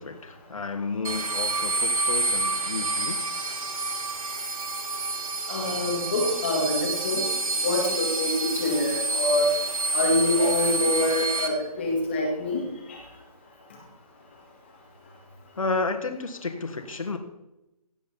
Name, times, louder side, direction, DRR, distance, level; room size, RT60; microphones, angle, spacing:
voice 1, 0.0-3.2 15.6-17.2, left 3 dB, 60° left, 7 dB, 1.6 m, -31 dB
sound 1, 1.0-11.5, right 3 dB, 60° right, 2.1 m, -28 dB
voice 2, 5.5-7.3 7.6-9.5 9.9-12.6 12.9-13.0, left 1 dB, 15° left, 0 dB, 2.1 m, -25 dB
16.5 x 5.7 x 7.1 m, 0.92 s
hypercardioid pair, 175°, 20 cm